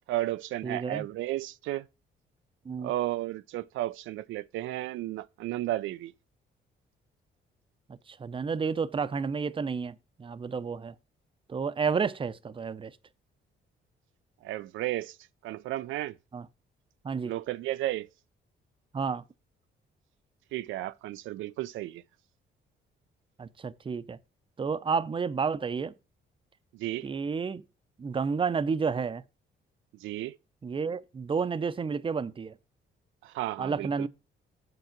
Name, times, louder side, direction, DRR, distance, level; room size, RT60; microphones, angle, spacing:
voice 1, 0.1-1.9 2.8-6.1 14.4-15.2 15.4-16.2 17.2-18.1 20.5-22.0 26.7-27.1 30.0-30.4 33.2-34.1, right 15 dB, 85° right, 0.4 m, -33 dB
voice 2, 0.6-1.1 2.6-2.9 7.9-10.9 11.5-12.9 16.3-16.5 17.0-17.3 18.9-19.2 23.4-24.2 24.6-25.9 27.0-27.6 28.0-29.2 30.6-32.5 33.6-34.1, right 5 dB, 25° right, 0.6 m, -31 dB
8.1 x 4.8 x 5.8 m
cardioid pair, 90°, 20 cm